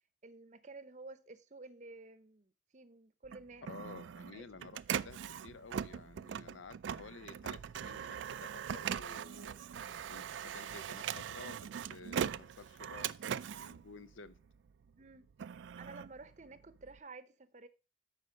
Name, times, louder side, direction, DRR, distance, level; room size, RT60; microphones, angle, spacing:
voice 1, 0.2-4.0 4.3-4.4 15.0-17.7, right 3 dB, 40° right, 0.7 m, -52 dB
Printer, 3.2-14.7 15.1-17.0, right 8 dB, 70° right, 0.3 m, -41 dB
voice 2, 3.7-14.3, left 4 dB, 80° left, 0.7 m, -53 dB
11.0 x 4.4 x 5.1 m
head